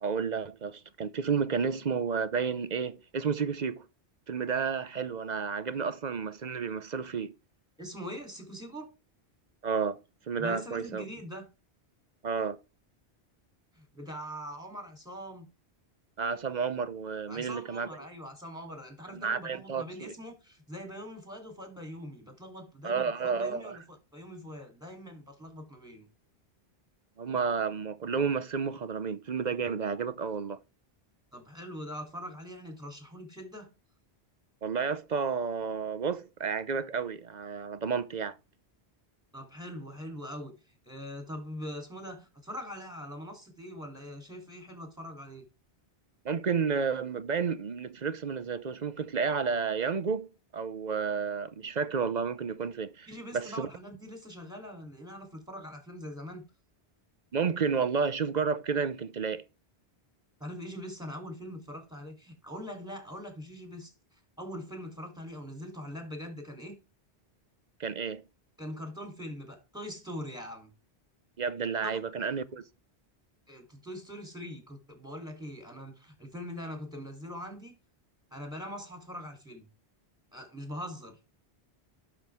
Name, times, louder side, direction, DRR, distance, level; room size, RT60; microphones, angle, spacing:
voice 1, 0.0-3.8 4.3-7.3 9.6-10.0 10.3-11.0 12.2-12.6 16.2-17.9 19.1-20.1 22.8-23.8 27.2-30.6 34.6-38.4 46.2-50.3 50.5-53.1 53.3-53.7 57.3-59.4 67.8-68.2 71.4-72.7, right 5 dB, 45° right, 0.7 m, -31 dB
voice 2, 7.8-8.9 10.4-11.5 13.8-15.5 17.3-26.1 31.3-33.7 39.3-45.4 53.1-56.5 60.4-66.8 68.6-70.7 71.8-72.0 73.5-77.8 78.3-79.7 80.3-81.2, equal, 5° right, 3.5 m, -42 dB
11.5 x 6.2 x 3.5 m
omnidirectional pair, 1.1 m